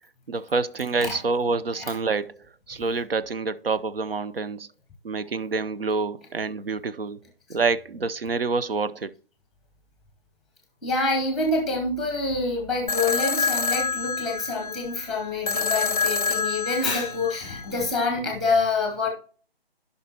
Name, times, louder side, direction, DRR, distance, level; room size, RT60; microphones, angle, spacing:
voice 1, 0.3-2.4 2.7-4.7 5.0-7.2 7.5-9.1, right 4 dB, 65° right, 0.7 m, -27 dB
voice 2, 10.8-19.1, left 3 dB, ahead, 0.9 m, -26 dB
sound 1, 12.9-17.9, left 5 dB, 40° left, 0.5 m, -27 dB
15.5 x 5.5 x 2.8 m
figure-of-eight pair, 145°, 31 cm